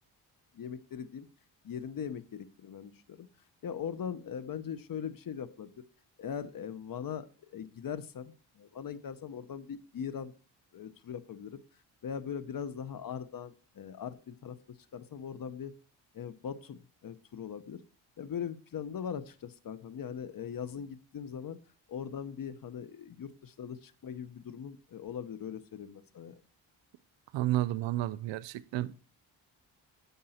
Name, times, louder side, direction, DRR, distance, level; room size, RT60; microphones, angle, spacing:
voice 1, 0.5-1.3 1.6-3.3 3.6-5.7 6.2-10.3 10.7-11.6 12.0-14.6 14.9-15.7 16.1-17.8 18.2-21.6 21.9-26.4, left 7 dB, 50° left, 0.9 m, -40 dB
voice 2, 27.3-28.9, right 15 dB, 80° right, 0.5 m, -31 dB
8.8 x 5.4 x 4.1 m
cardioid pair, 65°, 44 cm